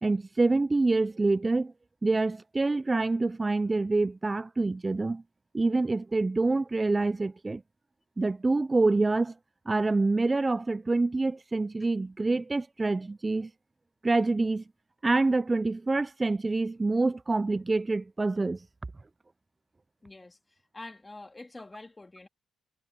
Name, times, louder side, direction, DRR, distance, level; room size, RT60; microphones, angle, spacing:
voice 1, 0.0-1.7 2.0-5.2 5.5-7.6 8.2-9.3 9.7-13.5 14.0-14.6 15.0-18.6, right 3 dB, 20° right, 0.3 m, -26 dB
voice 2, 20.0-22.3, left 2 dB, 15° left, 2.5 m, -46 dB
cardioid pair, 90°, 0 cm